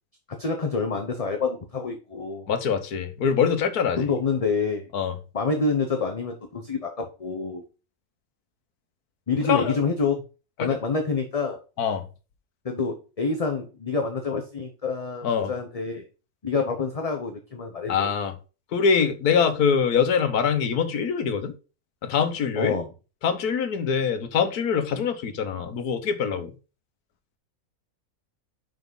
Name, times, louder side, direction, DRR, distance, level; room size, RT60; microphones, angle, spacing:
voice 1, 0.4-2.5 4.0-4.8 5.3-7.6 9.3-10.2 10.6-11.6 12.6-16.0 16.4-18.1 22.6-22.9, left 4 dB, 30° left, 0.8 m, -27 dB
voice 2, 2.5-4.1 4.9-5.2 9.4-9.8 10.6-10.7 11.8-12.0 15.2-15.5 17.9-18.3 18.7-21.5 22.0-22.8 23.2-26.5, left 6 dB, 90° left, 1.5 m, -24 dB
6.0 x 5.2 x 5.3 m
omnidirectional pair, 1.6 m